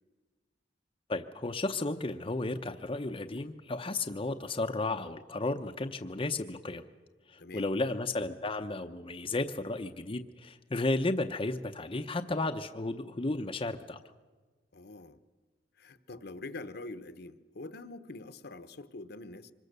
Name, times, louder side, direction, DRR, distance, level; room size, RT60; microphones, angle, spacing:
voice 1, 1.1-6.8 7.3-14.0, left 2 dB, 30° left, 5 dB, 0.7 m, -33 dB
voice 2, 14.7-15.2 15.8-19.5, left 2 dB, 65° left, 11 dB, 1.0 m, -44 dB
25.0 x 21.0 x 6.7 m, 1.3 s
head